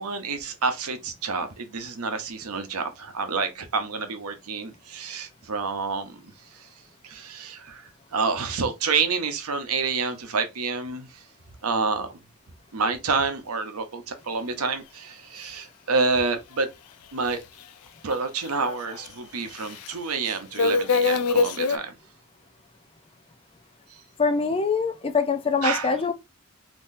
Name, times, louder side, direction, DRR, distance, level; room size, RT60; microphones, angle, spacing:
voice 1, 0.0-6.2 7.0-7.8 8.1-11.1 11.6-12.1 12.7-16.7 17.1-17.4 18.0-21.9 25.6-25.9, right 4 dB, 80° right, 0.8 m, -28 dB
sound 1, 17.3-17.4 18.1-18.2 18.4-19.1 19.6-19.9 20.3-21.8, left 4 dB, 85° left, 0.4 m, -23 dB
voice 2, 24.2-26.1, left 4 dB, 25° left, 0.5 m, -24 dB
3.8 x 2.8 x 2.6 m
head